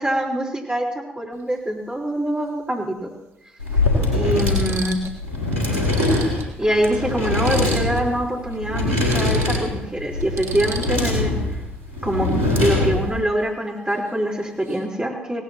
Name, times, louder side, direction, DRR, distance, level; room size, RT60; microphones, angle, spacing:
voice 1, 0.0-3.1 4.1-5.0 6.6-11.3 12.0-12.3 12.6-15.4, right 1 dB, 15° right, -1 dB, 4.2 m, -24 dB
sound 1, 1.3-1.5 3.0-3.1 3.8-3.9 4.3-5.2 5.5-5.6 5.8-8.1 8.4-8.6 8.9-11.3 13.9-14.1 14.4-14.9, right 4 dB, 55° right, 1.5 m, -36 dB
sound 2, 3.6-13.2, left 2 dB, 80° right, 3.6 m, -23 dB
18.0 x 17.5 x 3.0 m, 0.81 s
figure-of-eight pair, 45°, 6 cm